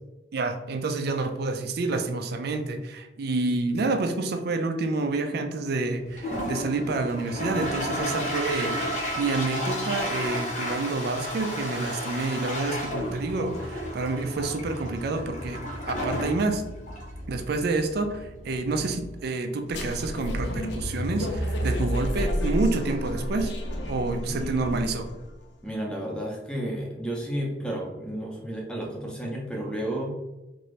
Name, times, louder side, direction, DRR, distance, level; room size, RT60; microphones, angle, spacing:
voice 1, 0.3-15.6 15.9-16.6 17.3-23.5 23.9-25.1, right 3 dB, 55° right, 6 dB, 0.4 m, -28 dB
Toilet flush, 6.0-19.2, equal, 40° left, 0.8 m, -33 dB
sound 1, 19.7-25.3, equal, 65° left, 0.5 m, -30 dB
voice 2, 24.2-24.9 25.6-30.1, right 1 dB, 5° left, -2 dB, 0.6 m, -32 dB
2.8 x 2.6 x 3.1 m, 1.0 s
head